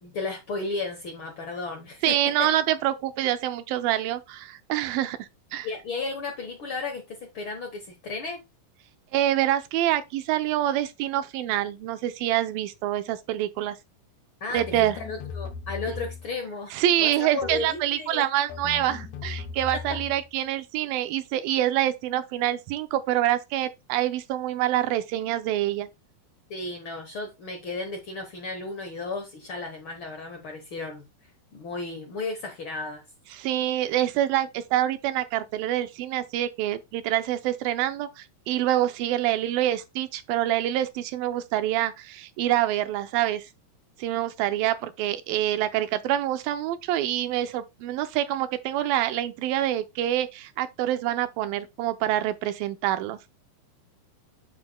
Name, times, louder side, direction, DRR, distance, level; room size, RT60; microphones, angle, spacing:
voice 1, 0.0-2.5 5.6-8.4 14.4-14.6 15.0-16.7 17.0-18.3 19.7-20.0 26.5-31.0 31.5-33.0, left 3 dB, 85° left, 1.1 m, -34 dB
voice 2, 2.0-5.7 9.1-13.8 14.5-15.0 16.7-25.9 33.3-43.5 44.0-53.2, right 13 dB, 85° right, 2.5 m, -26 dB
sound 1, 14.6-16.4 17.4-17.8 18.5-20.3, left 6 dB, 70° left, 1.8 m, -38 dB
8.1 x 6.9 x 2.2 m
omnidirectional pair, 4.1 m